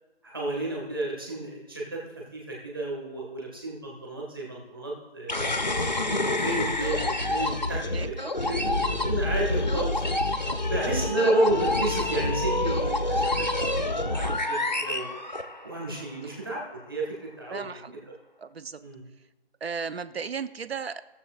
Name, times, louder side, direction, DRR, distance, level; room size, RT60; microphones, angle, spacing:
voice 1, 0.2-5.3 6.0-8.7 9.1-10.0 10.5-15.1 15.6-17.7 18.8-19.0, right 2 dB, 20° right, -4 dB, 1.8 m, -31 dB
sound 1, 5.3-15.9, left 2 dB, 40° left, 0.5 m, -27 dB
voice 2, 7.7-8.5 17.5-18.0 18.4-18.8 19.6-21.0, right 6 dB, 65° right, 13 dB, 0.7 m, -35 dB
18.5 x 6.9 x 2.5 m, 1.1 s
figure-of-eight pair, 180°, 33 cm